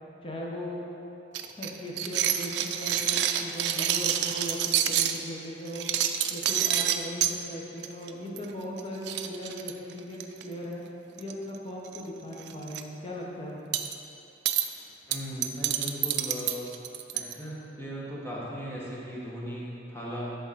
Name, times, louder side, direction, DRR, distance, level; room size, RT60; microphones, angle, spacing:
voice 1, 0.2-0.8 1.6-5.9 6.3-10.8 11.2-13.8, equal, 30° left, -3 dB, 1.1 m, -38 dB
sound 1, 1.3-5.2 5.7-7.3 7.8-8.1 8.4-8.5 8.8-8.9 9.1-10.4 11.2-11.6 11.8-12.0 12.4-12.8 13.7-13.9 14.5-14.7 15.1-17.3, right 11 dB, 70° right, 0.4 m, -27 dB
voice 2, 15.1-16.7 17.1-20.3, equal, 15° left, -6 dB, 1.3 m, -37 dB
11.0 x 3.9 x 4.2 m, 2.9 s
head